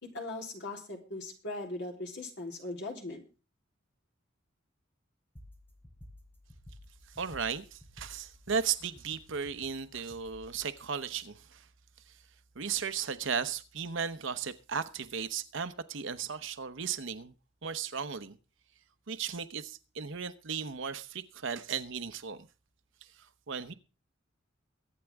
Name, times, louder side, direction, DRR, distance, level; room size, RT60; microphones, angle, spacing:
voice 1, 0.0-3.2, left 2 dB, 60° left, 3.6 m, -39 dB
sound 1, 5.4-10.6, left 1 dB, 10° left, 3.5 m, -54 dB
voice 2, 7.2-11.6 12.6-17.3 17.6-18.4 19.1-22.5 23.5-23.7, right 6 dB, 70° right, 0.9 m, -35 dB
23.0 x 8.9 x 3.6 m
head